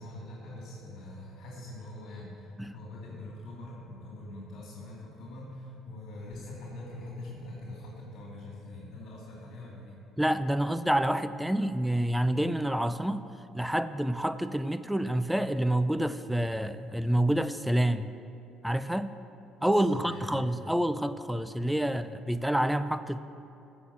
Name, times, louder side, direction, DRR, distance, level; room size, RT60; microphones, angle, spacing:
voice 1, 0.0-10.0 19.7-20.5, left 1 dB, 65° left, -4 dB, 2.7 m, -43 dB
voice 2, 10.2-13.3 13.5-18.1 18.6-19.2 19.6-23.2, right 1 dB, 5° right, 12 dB, 0.4 m, -28 dB
14.5 x 6.3 x 7.2 m, 2.7 s
cardioid pair, 100°, 0 cm